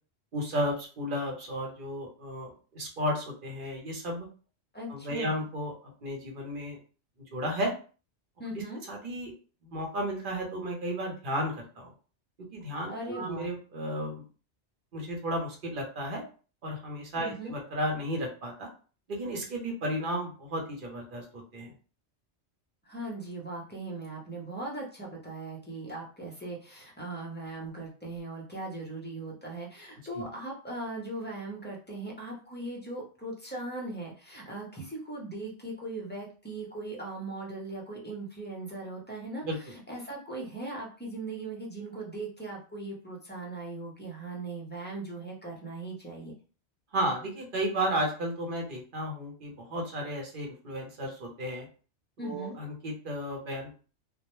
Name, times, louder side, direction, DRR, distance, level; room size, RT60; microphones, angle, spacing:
voice 1, 0.3-4.3 4.9-5.7 6.0-6.8 7.3-7.7 8.9-9.3 9.6-11.9 12.5-14.2 14.9-16.2 16.6-18.7 19.1-21.7 30.1-30.3 39.4-39.6 46.9-51.7 52.2-53.7, equal, 55° right, 0 dB, 0.8 m, -33 dB
voice 2, 4.7-5.5 8.4-8.8 12.9-13.5 17.2-17.6 22.8-46.3 52.2-52.6, right 2 dB, 15° left, -2 dB, 0.5 m, -39 dB
2.2 x 2.1 x 2.9 m, 0.37 s
omnidirectional pair, 1.2 m